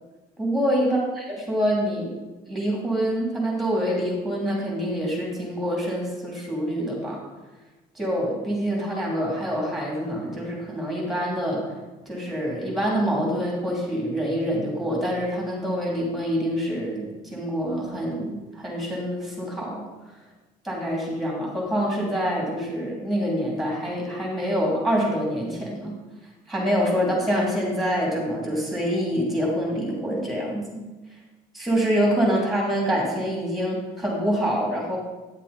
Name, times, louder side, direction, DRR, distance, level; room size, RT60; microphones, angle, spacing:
voice 1, 0.4-2.1 2.5-7.2 7.9-11.6 12.1-19.8 20.6-25.9 26.5-30.8 31.5-35.0, equal, ahead, -2 dB, 3.1 m, -26 dB
9.7 x 7.4 x 4.2 m, 1.2 s
cardioid pair, 110°, 17 cm